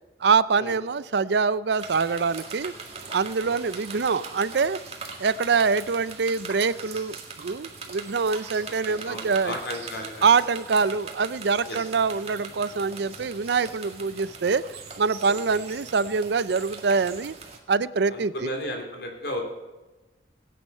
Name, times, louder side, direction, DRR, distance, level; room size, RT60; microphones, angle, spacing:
voice 1, 0.2-2.7 3.1-4.8 5.2-9.5 10.2-14.6 15.0-17.4 17.7-18.5, right 5 dB, 70° right, 17 dB, 0.5 m, -24 dB
sound 1, 1.8-17.6, right 4 dB, 35° right, 1.9 m, -41 dB
voice 2, 3.4-3.8 8.9-10.3 11.6-11.8 15.2-15.6 18.1-19.4, left 1 dB, 65° left, 2 dB, 3.1 m, -35 dB
sound 2, 9.0-14.4, equal, 10° left, 5.8 m, -56 dB
18.0 x 9.5 x 5.5 m, 1.1 s
head